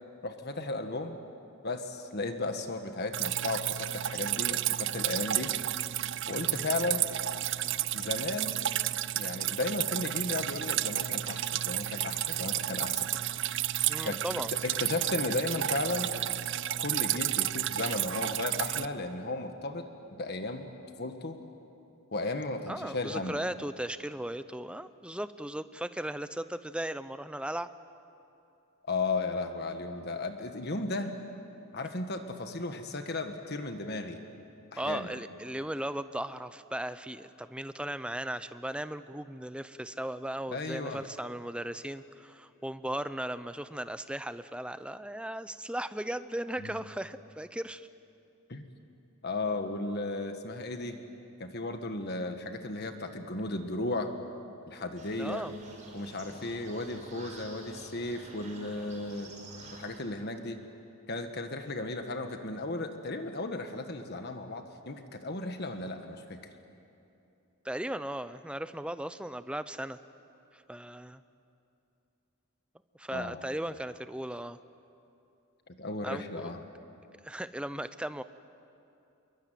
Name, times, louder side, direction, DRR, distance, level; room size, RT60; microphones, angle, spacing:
voice 1, 0.2-1.2 1.6-5.5 6.3-7.1 7.9-8.6 9.1-13.1 14.0-14.2 14.6-16.1 16.8-19.8 20.1-20.7 21.0-21.4 22.1-23.4 28.9-31.1 31.7-34.2 34.7-35.1 40.5-41.0 46.6-46.7 48.5-48.6 49.2-51.0 51.4-54.1 54.7-55.5 55.9-59.3 59.7-60.6 61.1-66.4 73.1-73.4 75.8-76.6, left 2 dB, 45° left, 6 dB, 1.5 m, -35 dB
Drip, 3.1-18.8, right 13 dB, 55° right, 0.5 m, -32 dB
voice 2, 13.9-14.5 22.7-27.7 34.8-47.9 55.2-55.5 67.6-70.0 70.5-71.2 73.0-74.6 76.0-76.5 77.2-78.2, right 1 dB, 5° right, 13 dB, 0.6 m, -37 dB
sound 1, 55.0-60.0, right 2 dB, 35° right, 5.6 m, -49 dB
26.5 x 23.0 x 9.3 m, 2.8 s
head